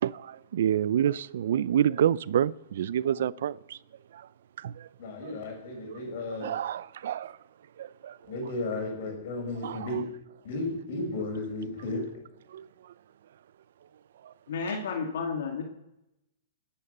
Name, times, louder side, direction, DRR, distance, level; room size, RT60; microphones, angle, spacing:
voice 1, 0.0-3.8 4.1-4.3 4.6-4.9 5.2-5.3 5.9-6.0 6.4-7.4 7.8-8.2 9.6-10.0 12.5-12.9 14.2-14.3, right 10 dB, 65° right, 0.5 m, -28 dB
voice 2, 5.0-6.5 8.3-10.0 10.4-12.0, left 2 dB, 55° left, 6.0 m, -34 dB
voice 3, 14.5-15.6, left 5 dB, 70° left, 2.2 m, -31 dB
20.0 x 10.0 x 6.7 m
hypercardioid pair, 155°, 0 cm